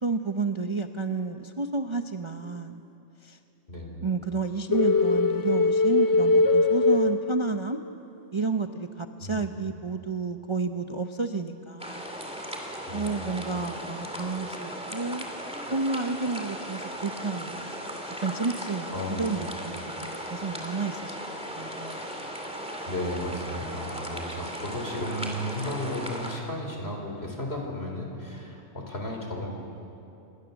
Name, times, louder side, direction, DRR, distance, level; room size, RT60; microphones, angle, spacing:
voice 1, 0.0-2.8 3.2-3.4 4.0-7.8 8.3-12.1 12.9-15.3 15.7-17.7 18.2-21.2 21.5-22.1, right 4 dB, 30° right, 6 dB, 0.7 m, -31 dB
voice 2, 3.7-4.1 9.2-9.5 12.9-13.2 18.9-19.3 22.9-29.5, left 1 dB, 55° left, 1 dB, 4.3 m, -34 dB
sound 1, 4.7-7.9, left 3 dB, 35° left, 0.3 m, -22 dB
sound 2, 11.8-26.4, equal, 5° right, 2.7 m, -37 dB
27.0 x 21.0 x 7.2 m, 2.8 s
omnidirectional pair, 1.3 m